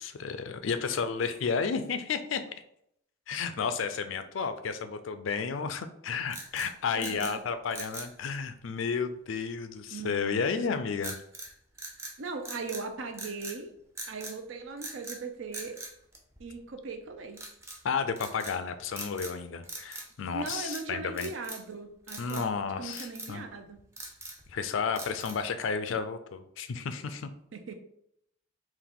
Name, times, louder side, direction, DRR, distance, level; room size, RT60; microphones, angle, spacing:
voice 1, 0.0-2.4 3.3-11.2 17.8-21.3 22.2-23.5 24.5-27.3, left 5 dB, 75° left, 9 dB, 0.4 m, -32 dB
sound 1, 6.3-7.4 7.7-8.1 11.0-11.5 11.8-12.9 13.1-13.6 14.0-14.4 14.8-15.2 15.5-16.7 17.3-17.8 18.2-18.6 18.9-19.4 19.6-20.1 20.4-20.9 21.2-21.7 22.1-22.5 22.9-23.3 23.8-24.5 24.9-25.5, right 2 dB, 15° right, 0.5 m, -42 dB
voice 2, 6.9-7.4 9.9-10.8 12.2-13.7 14.1-15.8 16.4-17.4 20.3-22.5 22.8-23.8 27.5-27.7, right 4 dB, 75° right, 6 dB, 0.6 m, -39 dB
3.9 x 2.5 x 3.5 m, 0.74 s
head